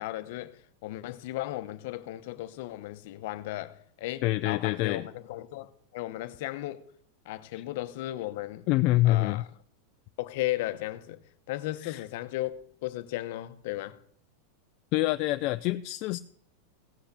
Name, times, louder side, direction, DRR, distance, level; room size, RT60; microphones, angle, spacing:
voice 1, 0.0-6.8 7.2-8.7 9.0-9.5 10.2-14.0, left 16 dB, 60° left, 0.8 m, -36 dB
voice 2, 4.2-5.1 7.5-7.6 8.7-9.4 11.8-12.0 14.9-16.2, left 17 dB, 45° left, 0.4 m, -26 dB
16.5 x 5.8 x 6.7 m
supercardioid pair, 145°, 0 cm